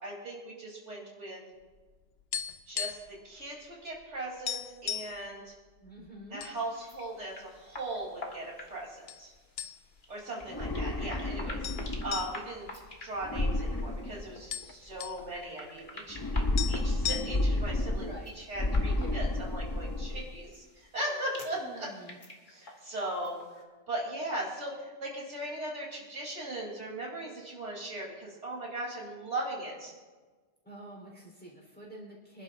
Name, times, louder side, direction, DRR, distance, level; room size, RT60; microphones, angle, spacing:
voice 1, 0.0-1.4 2.7-5.5 6.3-9.3 10.1-12.7 13.0-18.1 18.4-21.9 22.5-23.4 23.9-29.9, right 1 dB, 90° right, -3 dB, 3.8 m, -38 dB
sound 1, 1.8-3.2 3.5-3.7 4.0-4.1 4.5-5.2 5.9-6.6 6.9-7.1 7.8-8.4 9.1-9.2 9.6-10.1 10.5-10.6 11.6-13.7 14.0-14.1 14.3-15.2 16.2-16.3 16.6-17.6, left 9 dB, 65° left, 0.9 m, -37 dB
voice 2, 5.8-6.4 18.0-18.3 19.0-19.2 21.4-22.2 30.6-32.4, right 1 dB, 10° left, -3 dB, 3.8 m, -47 dB
sound 2, 6.6-23.6, left 1 dB, 45° left, 1.8 m, -49 dB
sound 3, 10.4-12.3 13.2-14.7 16.1-18.2 18.5-20.3, left 2 dB, 25° left, 0.6 m, -31 dB
25.5 x 11.5 x 2.6 m, 1.3 s
omnidirectional pair, 1.2 m